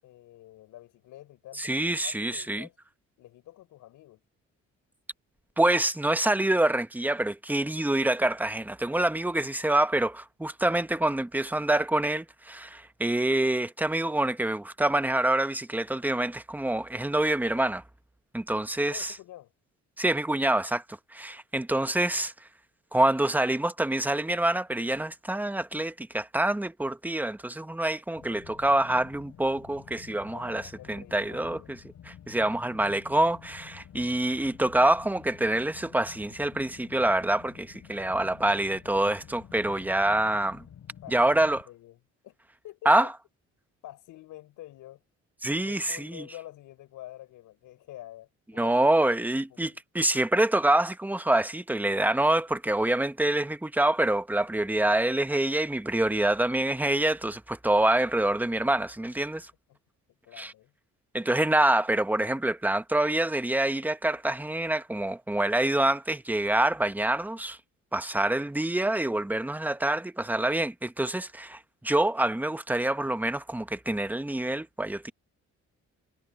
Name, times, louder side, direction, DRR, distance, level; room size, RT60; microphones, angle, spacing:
voice 1, 0.0-2.7 3.2-4.2 18.8-19.5 30.3-31.7 41.0-42.4 42.6-43.1 43.8-45.0 45.6-49.8 59.7-59.8 60.2-60.7, left 14 dB, 85° left, 7.6 m, -48 dB
voice 2, 1.5-2.7 5.6-17.8 18.3-19.1 20.0-20.8 21.1-22.3 22.9-31.8 32.0-40.6 41.1-41.6 42.8-43.1 45.4-46.2 48.6-59.5 60.4-60.5 61.1-67.6 67.9-75.1, right 1 dB, 5° right, 1.2 m, -26 dB
sound 1, 28.2-41.6, left 9 dB, 65° left, 6.4 m, -50 dB
cardioid pair, 90°, 30 cm